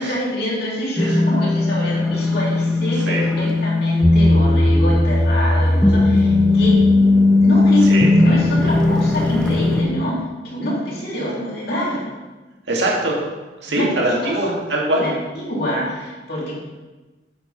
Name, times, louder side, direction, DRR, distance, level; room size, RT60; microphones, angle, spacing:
voice 1, 0.0-6.8 7.4-12.2 13.7-13.9 14.2-14.4 15.0-16.5, equal, 60° left, -5 dB, 2.8 m, -26 dB
sound 1, 1.0-9.8, left 2 dB, 5° left, 0.8 m, -16 dB
voice 2, 2.9-3.3 7.8-8.1 12.7-13.2 13.6-15.1, right 1 dB, 75° right, -3 dB, 2.1 m, -22 dB
8.8 x 6.4 x 4.1 m, 1.2 s
head